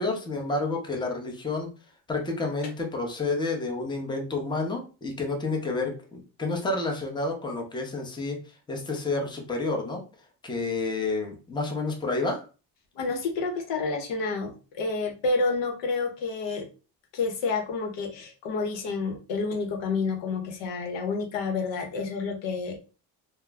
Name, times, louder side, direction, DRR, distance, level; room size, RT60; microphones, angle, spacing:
voice 1, 0.0-1.7 2.1-10.0 10.4-12.5, left 3 dB, 10° left, 1 dB, 0.6 m, -30 dB
voice 2, 12.9-16.7 17.1-22.8, left 4 dB, 70° left, 3 dB, 0.8 m, -29 dB
2.2 x 2.0 x 3.3 m, 0.34 s
cardioid pair, 85°, 45 cm